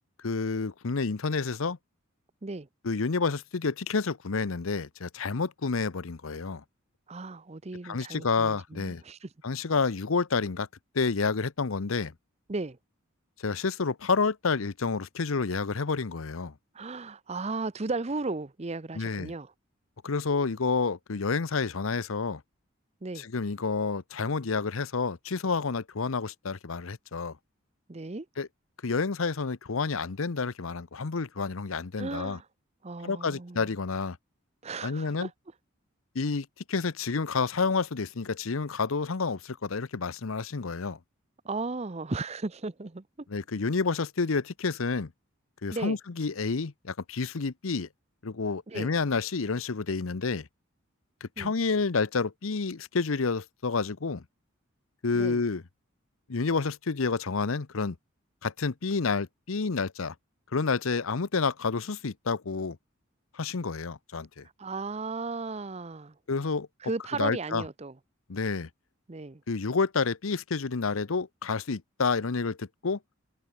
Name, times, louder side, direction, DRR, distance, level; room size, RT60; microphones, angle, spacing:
voice 1, 0.2-1.8 2.8-6.6 7.8-9.0 9.4-10.7 10.9-12.1 13.4-16.5 18.9-19.3 20.0-22.4 23.2-27.4 28.4-28.5 28.8-32.4 33.0-34.2 34.8-35.3 36.1-41.0 43.3-45.1 45.6-47.9 48.2-50.5 51.2-54.2 55.0-55.6 56.3-58.0 58.4-60.1 60.5-62.8 63.3-64.4 66.3-66.7 67.2-67.6 68.3-68.7 69.5-73.0, left 4 dB, 75° left, 0.8 m, -29 dB
voice 2, 7.1-9.3 12.5-12.8 16.7-19.5 23.0-23.3 27.9-28.3 32.0-32.5 32.8-33.7 34.6-35.3 41.4-43.0 45.7-46.0 48.7-48.9 51.4-51.5 55.1-55.4 64.6-66.1 66.8-67.9 69.1-69.4, right 3 dB, 30° right, 0.7 m, -35 dB
head